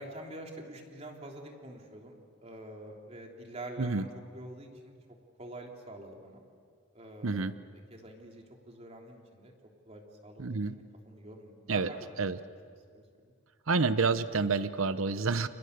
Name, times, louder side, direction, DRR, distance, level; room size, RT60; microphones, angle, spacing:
voice 1, 0.0-4.9 5.4-6.4 6.9-7.6 7.9-9.5 9.8-12.1 12.9-13.0, right 1 dB, 30° right, 1 dB, 3.3 m, -46 dB
voice 2, 7.2-7.5 10.4-10.8 11.7-11.9 12.2-12.4 13.7-15.5, right 4 dB, 80° right, 13 dB, 0.9 m, -28 dB
30.0 x 29.5 x 6.7 m, 2.1 s
head